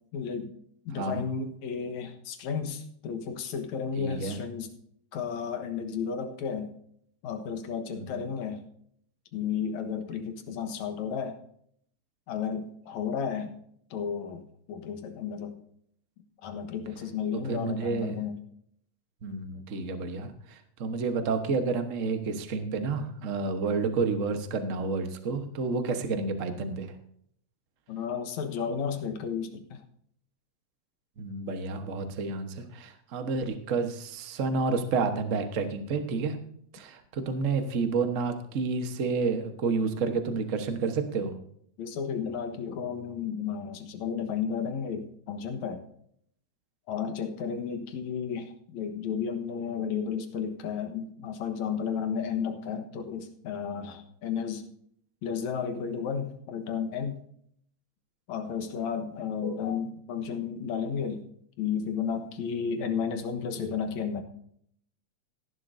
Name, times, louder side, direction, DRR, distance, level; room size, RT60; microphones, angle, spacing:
voice 1, 0.1-0.6 0.9-4.7 5.1-6.7 7.2-8.6 9.3-11.4 12.3-13.6 13.9-15.6 16.4-18.3 27.9-29.8 41.8-45.8 46.9-54.7 55.2-57.2 58.3-61.2 61.6-64.2, left 7 dB, 75° left, 7 dB, 2.6 m, -33 dB
voice 2, 4.0-4.4 7.9-8.2 17.3-18.2 19.2-26.9 31.2-36.4 36.7-41.4, right 4 dB, 65° right, 7 dB, 0.7 m, -30 dB
17.0 x 11.0 x 2.7 m, 0.66 s
omnidirectional pair, 3.3 m